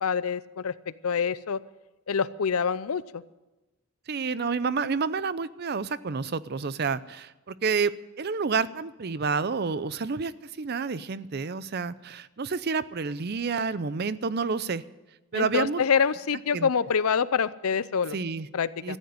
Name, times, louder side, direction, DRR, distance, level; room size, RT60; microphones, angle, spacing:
voice 1, 0.0-0.7 1.0-1.6 2.1-3.2 15.3-18.2 18.5-19.0, left 6 dB, 85° left, 17 dB, 0.6 m, -26 dB
voice 2, 4.1-7.9 8.2-10.3 10.6-14.8 15.3-15.8 16.5-16.7 18.1-18.5 18.8-19.0, right 5 dB, 45° right, 16 dB, 0.5 m, -29 dB
14.5 x 9.5 x 9.3 m, 1.1 s
head